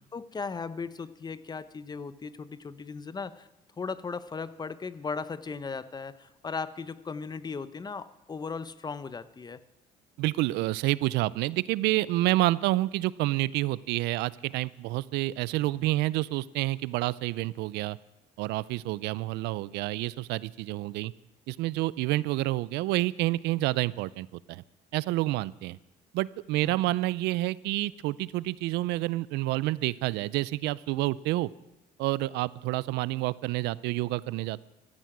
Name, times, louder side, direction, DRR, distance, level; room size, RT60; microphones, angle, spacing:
voice 1, 0.0-3.5 3.8-9.6 26.6-27.0, left 5 dB, 25° left, 15 dB, 0.8 m, -37 dB
voice 2, 10.2-18.0 18.4-21.1 21.5-24.6 24.9-25.8 26.1-31.5 32.0-34.6, right 18 dB, 90° right, 20 dB, 0.5 m, -28 dB
15.5 x 14.0 x 6.1 m, 0.93 s
cardioid pair, 110°, 17 cm